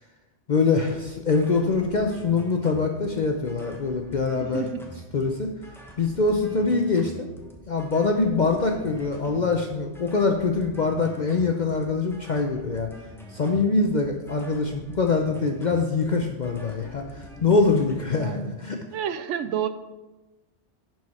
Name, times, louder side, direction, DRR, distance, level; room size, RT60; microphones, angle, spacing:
voice 1, 0.5-4.7 5.1-5.5 6.0-7.3 7.7-12.9 13.3-18.8, left 4 dB, 45° left, 3 dB, 0.7 m, -24 dB
sound 1, 0.9-18.2, right 1 dB, ahead, 1.1 m, -45 dB
voice 2, 4.4-4.8 18.1-18.6 18.9-19.7, right 9 dB, 90° right, 11 dB, 0.9 m, -30 dB
11.0 x 4.7 x 4.2 m, 1.1 s
omnidirectional pair, 1.2 m